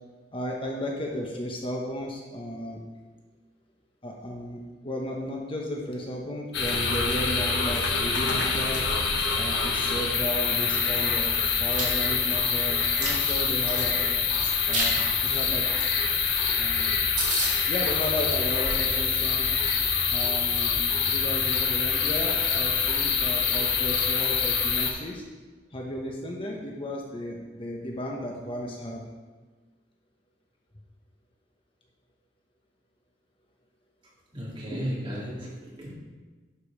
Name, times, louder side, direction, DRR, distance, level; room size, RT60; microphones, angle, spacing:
voice 1, 0.3-2.8 4.0-8.9 9.4-14.0 14.7-15.6 16.6-16.9 17.7-19.5 20.1-20.7 21.1-25.2 25.7-29.0, equal, 30° left, -1 dB, 1.0 m, -34 dB
sound 1, 6.5-24.9, left 6 dB, 75° left, 1.3 m, -25 dB
Chewing mastication, 11.5-11.8 12.3-13.8 14.4-14.9 15.2-15.4 15.8-15.9 16.1-16.2 16.6-16.7 16.9-17.0 17.2-17.5, right 3 dB, 45° right, 2.6 m, -31 dB
voice 2, 34.3-35.9, equal, 30° right, -7 dB, 3.4 m, -34 dB
11.5 x 5.3 x 5.2 m, 1.4 s
head